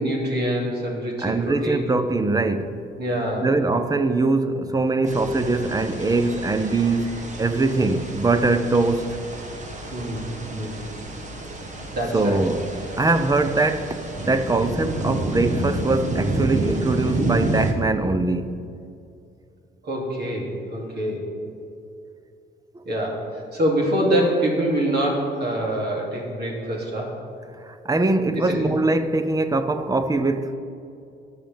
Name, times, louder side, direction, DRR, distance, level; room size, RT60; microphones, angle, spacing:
voice 1, 0.0-1.9 3.0-3.5 9.9-10.8 11.9-12.4 19.8-21.3 22.8-27.2 28.3-28.6, right 1 dB, 55° right, 2.9 m, -25 dB
voice 2, 1.2-2.8 3.4-9.2 12.1-12.7 12.9-18.6 27.7-30.5, right 3 dB, 20° right, 0.7 m, -22 dB
sound 1, 5.1-17.7, right 2 dB, 35° right, 1.4 m, -29 dB
19.0 x 6.4 x 3.6 m
cardioid pair, 90°, 20 cm